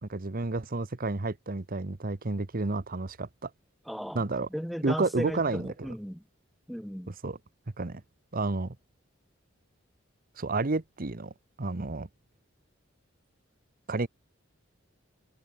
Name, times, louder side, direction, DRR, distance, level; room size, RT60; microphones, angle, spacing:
voice 1, 0.0-3.5 4.1-4.5 4.8-5.7 7.2-7.4 7.8-8.0 8.3-8.8 10.4-11.3 11.6-12.1 13.9-14.1, right 3 dB, 45° right, 1.0 m, -30 dB
voice 2, 3.9-6.2 6.7-7.1, equal, ahead, 5.7 m, -36 dB
head